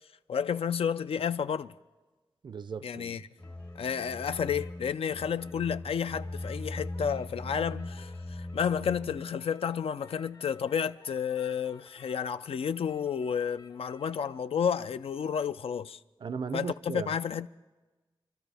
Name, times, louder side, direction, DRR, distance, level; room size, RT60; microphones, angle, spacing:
voice 1, 0.3-1.7 2.8-3.2 3.8-16.0 16.5-17.5, left 7 dB, 85° left, 0.4 m, -31 dB
voice 2, 2.4-3.2 16.2-17.1, right 5 dB, 55° right, 0.4 m, -37 dB
sound 1, 3.4-14.4, left 3 dB, 55° left, 1.8 m, -59 dB
sound 2, 3.4-9.4, left 1 dB, 10° left, 0.5 m, -40 dB
26.5 x 13.0 x 3.4 m
wide cardioid pair, 140°, 10 cm